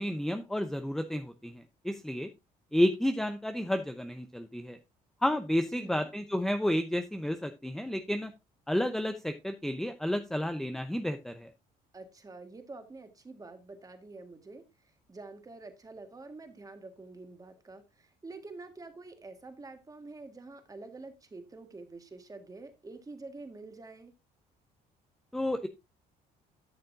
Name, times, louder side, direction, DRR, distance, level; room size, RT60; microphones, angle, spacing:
voice 1, 0.0-2.3 2.7-4.8 5.2-8.3 8.7-11.5 25.3-25.7, left 1 dB, ahead, 0.6 m, -31 dB
voice 2, 5.7-6.1 11.9-24.1, right 3 dB, 20° right, 1.7 m, -47 dB
11.5 x 6.6 x 2.6 m
cardioid pair, 110°, 17 cm